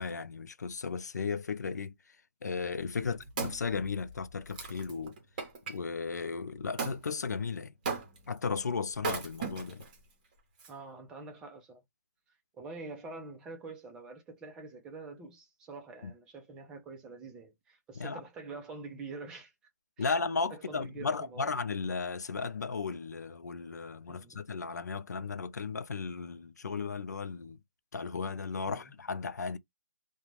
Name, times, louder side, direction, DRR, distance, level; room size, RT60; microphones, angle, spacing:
voice 1, 0.0-1.9 2.4-5.2 5.7-7.7 8.3-9.8 16.0-16.1 18.0-18.2 20.0-27.6 27.9-29.6, left 5 dB, 90° left, 0.5 m, -35 dB
Wood, 2.8-5.8 6.8-7.0 7.8-8.4 8.9-9.9 10.6-10.7, right 4 dB, 30° right, 1.0 m, -37 dB
voice 2, 10.6-11.8 12.6-19.5 20.0-20.1 20.5-21.5 24.1-24.4 28.7-28.9, right 3 dB, 10° right, 0.5 m, -46 dB
2.5 x 2.2 x 3.1 m
hypercardioid pair, 165°, 9 cm